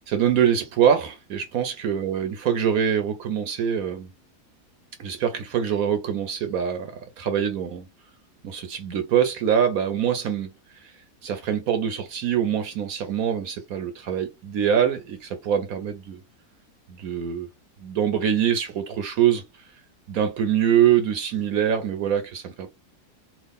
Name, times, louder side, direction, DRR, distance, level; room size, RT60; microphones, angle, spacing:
voice 1, 0.1-4.1 5.0-7.9 8.4-10.5 11.2-16.2 16.9-17.5 17.8-19.4 20.1-22.7, right 9 dB, 70° right, 1.0 m, -24 dB
3.6 x 2.4 x 3.5 m
omnidirectional pair, 1.7 m